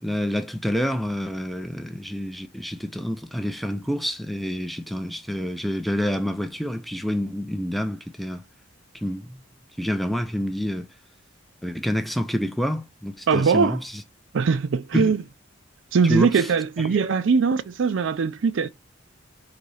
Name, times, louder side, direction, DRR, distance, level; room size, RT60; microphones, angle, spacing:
voice 1, 0.0-8.4 8.9-9.4 9.8-10.9 11.6-14.0 14.9-15.1 16.1-16.5 16.8-17.0, equal, ahead, 0.4 m, -28 dB
voice 2, 13.3-13.8 14.3-15.2 15.9-18.7, right 5 dB, 70° right, 0.4 m, -21 dB
4.0 x 2.8 x 4.7 m
head